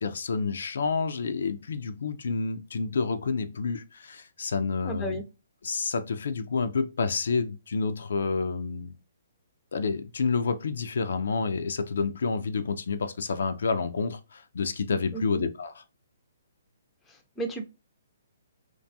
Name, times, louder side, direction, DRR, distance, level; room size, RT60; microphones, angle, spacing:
voice 1, 0.0-5.2 5.6-9.0 9.7-15.8, left 4 dB, 75° left, 0.3 m, -29 dB
voice 2, 4.8-5.2 15.1-15.5 17.1-17.6, right 1 dB, 10° left, 0.5 m, -34 dB
2.5 x 2.2 x 2.6 m
hypercardioid pair, 150°, 0 cm